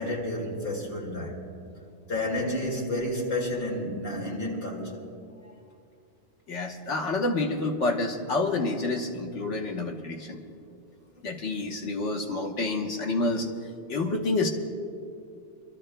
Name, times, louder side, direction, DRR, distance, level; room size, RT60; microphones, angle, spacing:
voice 1, 0.0-1.4 2.1-5.0, left 1 dB, 55° left, 2.5 m, -30 dB
voice 2, 6.5-10.4 11.2-13.5 13.9-14.5, left 2 dB, 90° left, 1.4 m, -28 dB
29.5 x 13.5 x 2.2 m
omnidirectional pair, 1.2 m